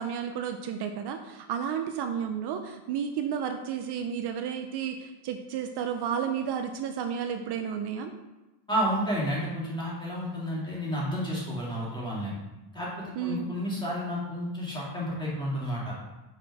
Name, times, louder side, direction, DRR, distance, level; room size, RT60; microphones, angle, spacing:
voice 1, 0.0-8.1 13.2-13.5, right 8 dB, 60° right, 6 dB, 0.6 m, -32 dB
voice 2, 8.7-12.3 12.7-15.9, equal, 10° left, -6 dB, 2.3 m, -31 dB
6.3 x 4.8 x 4.7 m, 1.1 s
cardioid pair, 145°, 45 cm